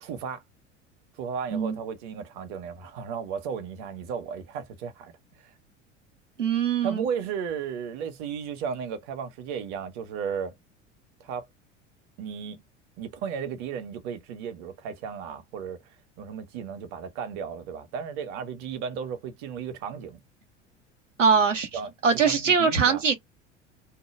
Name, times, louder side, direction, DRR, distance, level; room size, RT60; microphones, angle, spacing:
voice 1, 0.0-0.4 1.2-5.1 5.4-5.5 6.8-10.5 11.2-11.5 12.2-12.6 13.0-20.2 21.7-21.9 22.2-23.0, right 7 dB, 50° right, 0.9 m, -34 dB
voice 2, 6.4-7.0 21.2-21.7 22.0-23.1, right 6 dB, 85° right, 0.8 m, -22 dB
2.2 x 2.2 x 3.1 m
figure-of-eight pair, 70°, 37 cm